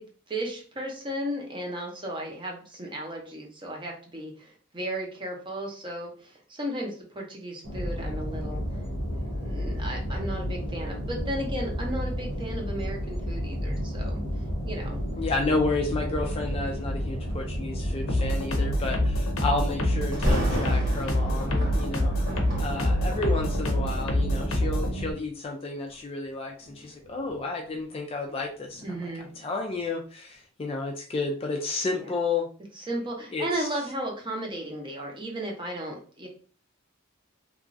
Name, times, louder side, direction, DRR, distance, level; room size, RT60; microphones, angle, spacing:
voice 1, 0.0-8.8 9.1-14.2 14.6-15.0 28.8-29.5 32.0-32.1 32.8-36.3, right 1 dB, 25° right, 0 dB, 0.7 m, -35 dB
sound 1, 7.6-25.1, equal, 85° right, 0.8 m, -32 dB
voice 2, 15.2-22.2 22.6-32.5 33.3-33.7, left 3 dB, 25° left, 1 dB, 0.3 m, -31 dB
sound 2, 18.1-24.9, left 1 dB, 80° left, 0.6 m, -27 dB
Thunder, 20.1-25.1 25.7-26.0 26.6-29.4 29.8-29.9, equal, 50° right, 1.1 m, -34 dB
3.0 x 2.4 x 2.5 m, 0.41 s
head